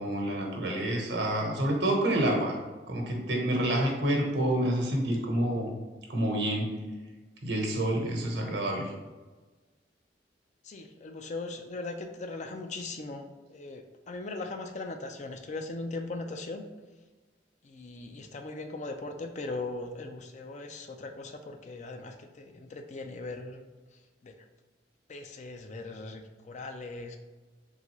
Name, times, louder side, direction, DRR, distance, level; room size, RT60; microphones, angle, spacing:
voice 1, 0.0-2.6 2.9-5.7 6.1-6.7 7.4-8.9, right 1 dB, 85° right, 0 dB, 1.0 m, -28 dB
voice 2, 10.6-16.7 17.6-23.7 24.2-24.3 25.1-27.2, left 2 dB, 40° left, 5 dB, 0.4 m, -39 dB
3.8 x 3.6 x 3.0 m, 1.3 s
head